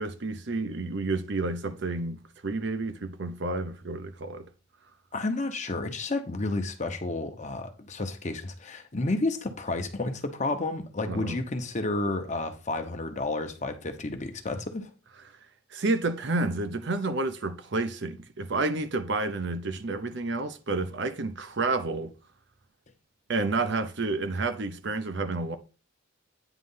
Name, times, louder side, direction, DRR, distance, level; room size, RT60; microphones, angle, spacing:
voice 1, 0.0-4.5 11.0-11.4 15.7-22.1 23.3-25.6, right 3 dB, 55° right, 0.7 m, -30 dB
voice 2, 5.1-14.9, left 2 dB, 35° left, 0.9 m, -31 dB
9.2 x 3.2 x 5.5 m
head